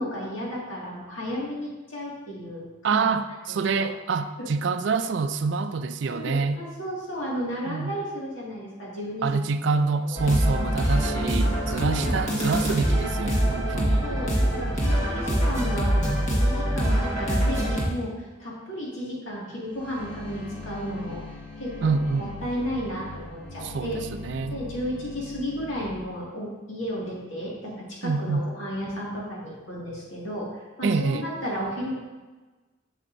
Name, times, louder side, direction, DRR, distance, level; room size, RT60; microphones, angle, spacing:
voice 1, 0.0-3.0 3.7-3.9 4.4-4.5 6.1-9.4 9.8-10.2 11.8-12.3 13.7-24.0 24.5-32.0, equal, 90° left, -5 dB, 2.1 m, -33 dB
voice 2, 2.8-6.6 7.7-7.9 9.2-14.1 21.8-22.3 23.6-24.6 28.0-28.4 30.8-31.3, right 4 dB, 65° right, 11 dB, 0.4 m, -26 dB
sound 1, 10.2-17.9, equal, 40° left, 1.4 m, -24 dB
sound 2, 19.7-26.0, left 3 dB, 70° left, 1.7 m, -40 dB
7.6 x 6.4 x 2.6 m, 1.2 s
head